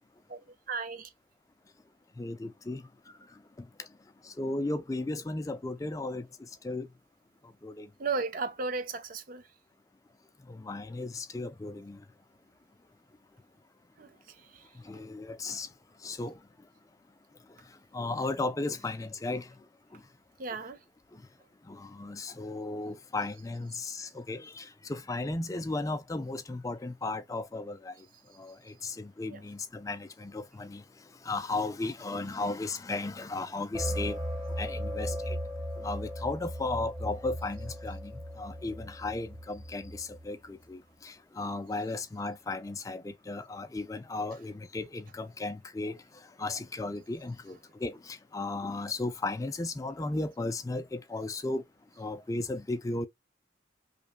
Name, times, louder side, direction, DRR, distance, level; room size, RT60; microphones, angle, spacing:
voice 1, 0.7-1.1 8.0-9.4 14.0-14.1 14.5-14.6 20.4-20.8 29.3-29.4, right 4 dB, 45° right, 0.5 m, -34 dB
voice 2, 2.2-2.8 3.6-3.9 4.2-6.9 7.6-7.9 10.5-12.0 14.8-15.7 16.0-16.4 17.9-19.5 19.9-20.0 21.7-27.9 28.4-30.8 31.2-34.2 34.6-35.4 35.8-38.1 38.4-46.0 46.4-51.6 52.0-53.1, left 2 dB, 15° left, 0.3 m, -35 dB
sound 1, 33.7-40.3, equal, 10° right, 1.6 m, -37 dB
5.2 x 2.2 x 2.3 m
head